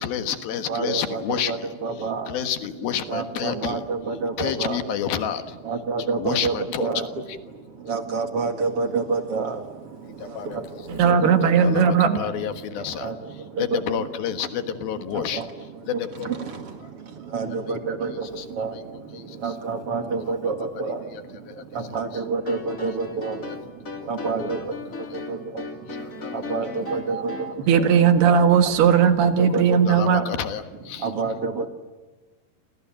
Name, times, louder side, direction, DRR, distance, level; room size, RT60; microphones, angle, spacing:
voice 1, 0.0-1.7 2.3-3.8 4.4-5.6 6.2-6.9 10.1-10.6 11.0-11.1 11.6-13.1 13.6-15.4 15.9-16.3 17.7-18.5 18.7-18.8 19.1-19.5 20.3-20.4 21.1-21.2 21.5-21.6 24.3-24.4 25.1-25.2 25.9-26.6 27.1-27.2 27.9-28.0 28.9-29.0 29.7-31.1, left 9 dB, 70° left, 3.2 m, -30 dB
voice 2, 0.7-2.4 3.1-4.8 5.6-7.2 7.5-14.7 14.9-27.9 28.6-29.0 29.4-30.3 30.9-31.7, right 4 dB, 45° right, 2.5 m, -30 dB
voice 3, 10.9-12.2 27.1-27.4 27.7-30.2, right 7 dB, 80° right, 3.8 m, -18 dB
sound 1, 22.4-27.6, left 3 dB, 20° left, 3.2 m, -36 dB
29.5 x 26.5 x 7.6 m
omnidirectional pair, 4.6 m